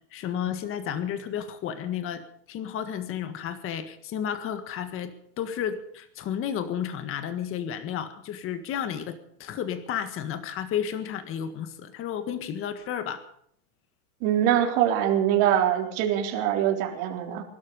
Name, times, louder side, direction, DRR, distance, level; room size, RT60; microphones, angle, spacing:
voice 1, 0.1-2.2 2.5-13.2, left 9 dB, 30° left, 9 dB, 1.7 m, -32 dB
voice 2, 14.2-17.4, right 10 dB, 55° right, 1 dB, 3.9 m, -23 dB
22.5 x 12.0 x 5.2 m, 0.68 s
supercardioid pair, 145°, 41 cm